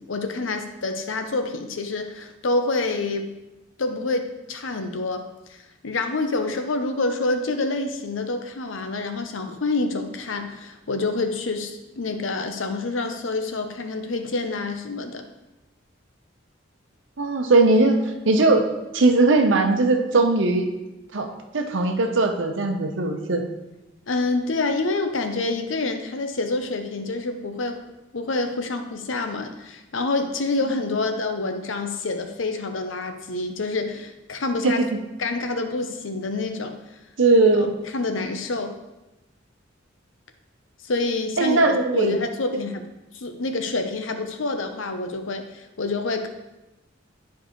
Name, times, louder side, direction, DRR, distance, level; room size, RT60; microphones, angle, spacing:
voice 1, 0.0-3.3 3.8-5.3 5.8-15.2 24.1-27.8 28.1-34.8 35.2-36.8 37.6-38.7 40.8-42.9 43.1-46.3, left 3 dB, 85° left, 6 dB, 0.7 m, -27 dB
voice 2, 17.2-18.0 18.2-18.6 18.9-20.7 21.1-21.3 21.5-23.4 34.6-34.8 37.2-37.7 41.4-42.2, right 3 dB, 75° right, 4 dB, 0.8 m, -19 dB
10.0 x 4.7 x 3.1 m, 1.0 s
head